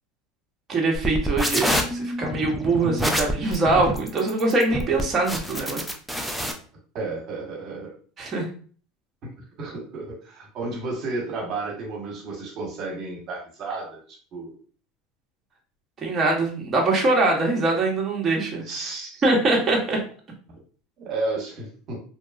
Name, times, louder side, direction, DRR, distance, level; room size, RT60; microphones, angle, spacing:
voice 1, 0.7-5.9 8.2-8.5 16.0-18.6 19.2-20.0, right 2 dB, 30° right, 0 dB, 0.9 m, -23 dB
sound 1, 0.9-6.5, equal, ahead, 0.4 m, -27 dB
voice 2, 6.9-7.9 9.2-9.3 9.6-14.0 14.3-14.5 18.6-19.2 20.5-20.6 21.0-22.0, right 3 dB, 50° right, -2 dB, 1.2 m, -32 dB
2.9 x 2.2 x 2.4 m, 0.43 s
supercardioid pair, 110°, 0 cm